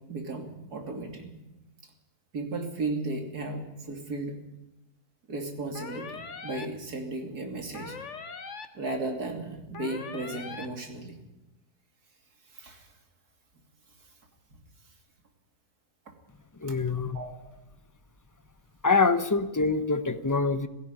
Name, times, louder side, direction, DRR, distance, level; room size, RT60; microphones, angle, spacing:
voice 1, 0.1-1.4 2.3-4.4 5.3-7.9 8.7-11.2 12.5-12.9 16.6-16.7 17.1-17.4, right 2 dB, 85° right, 4 dB, 3.4 m, -35 dB
sound 1, 5.7-6.6 7.7-8.6 9.7-10.6, left 4 dB, 50° left, 1.8 m, -40 dB
voice 2, 16.6-17.2 18.8-20.7, left 4 dB, 15° left, 12 dB, 0.7 m, -25 dB
17.0 x 15.5 x 9.9 m, 0.97 s
omnidirectional pair, 1.6 m